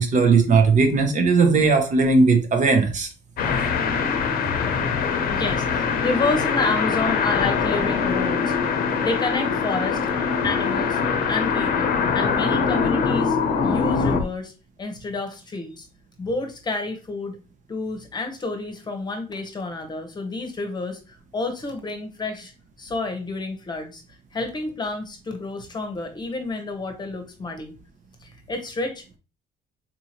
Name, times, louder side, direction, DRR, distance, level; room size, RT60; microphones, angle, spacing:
voice 1, 0.0-3.1, right 4 dB, 45° right, 0.8 m, -18 dB
sound 1, 3.4-14.2, left 5 dB, 60° left, 0.7 m, -23 dB
voice 2, 5.2-10.0 10.4-11.0 11.3-14.5 14.8-15.9 16.2-17.4 17.7-22.5 22.8-24.0 24.3-27.7 28.2-29.2, left 3 dB, 25° left, 0.9 m, -29 dB
3.9 x 2.7 x 2.9 m
cardioid pair, 110°, 17 cm